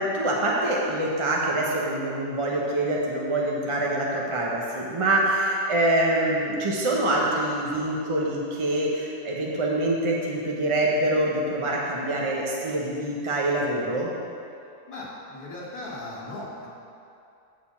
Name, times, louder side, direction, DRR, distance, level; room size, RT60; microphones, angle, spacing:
voice 1, 0.0-14.1, right 1 dB, 25° right, -3 dB, 0.8 m, -25 dB
voice 2, 14.9-16.7, left 2 dB, 35° left, -6 dB, 2.3 m, -37 dB
8.8 x 5.1 x 7.0 m, 2.6 s
omnidirectional pair, 1.6 m